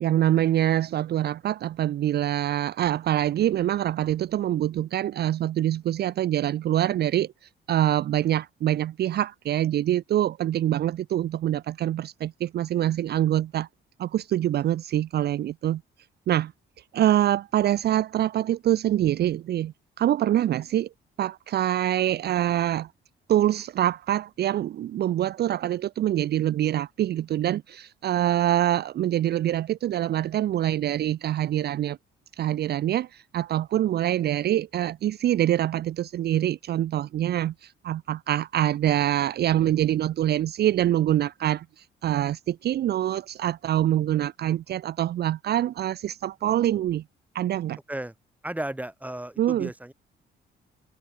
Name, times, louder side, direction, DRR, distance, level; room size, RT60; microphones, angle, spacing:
voice 1, 0.0-7.3 7.7-13.7 14.0-15.8 16.3-16.5 16.9-20.9 21.2-22.9 23.3-32.0 32.4-47.0 47.3-47.8 49.4-49.7, right 12 dB, 55° right, 0.5 m, -25 dB
voice 2, 48.4-49.9, right 1 dB, 5° right, 5.5 m, -34 dB
open air
cardioid pair, 90°, 20 cm